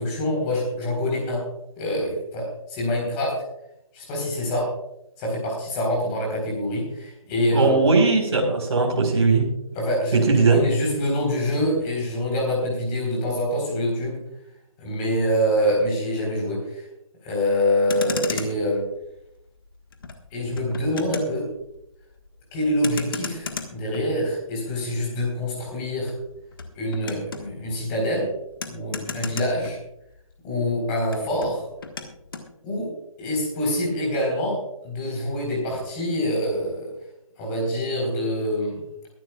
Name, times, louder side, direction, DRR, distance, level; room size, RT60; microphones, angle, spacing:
voice 1, 0.0-1.5 1.8-3.4 3.9-4.7 5.2-7.7 9.7-14.2 14.8-16.9 17.2-18.8 20.3-21.5 22.5-26.1 26.8-28.3 28.7-29.8 30.4-31.6 32.6-32.9 33.2-36.9 37.4-38.9, equal, 15° left, -1 dB, 4.0 m, -25 dB
voice 2, 7.5-9.4 10.1-10.6, right 4 dB, 50° right, 0 dB, 4.6 m, -19 dB
Motor vehicle (road), 17.8-30.3 30.6-32.5, left 5 dB, 40° left, 1.5 m, -37 dB
23.0 x 11.5 x 2.4 m, 0.83 s
hypercardioid pair, 165°, 18 cm